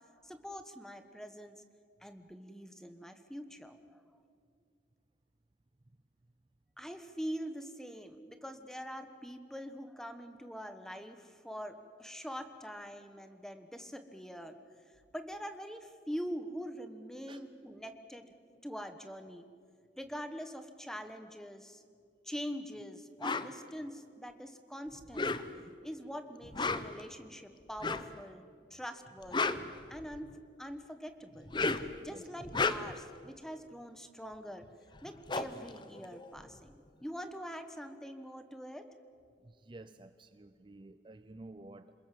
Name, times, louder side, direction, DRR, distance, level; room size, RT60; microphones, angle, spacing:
voice 1, 0.2-1.6 2.0-4.0 6.8-14.6 15.1-18.3 18.6-19.5 20.0-21.8 22.2-25.3 25.8-28.4 28.7-31.5 32.0-34.7 35.0-38.9, equal, 5° left, 8 dB, 1.2 m, -44 dB
sound 1, 23.2-23.5 25.0-25.7 26.4-27.0 27.8-28.1 29.1-30.3 31.3-32.0 32.4-33.1 34.6-34.7 35.0-36.6, left 3 dB, 25° left, 0.8 m, -34 dB
voice 2, 32.0-32.3 39.4-41.9, right 2 dB, 30° right, 11 dB, 0.5 m, -52 dB
27.5 x 20.5 x 7.6 m, 2.3 s
head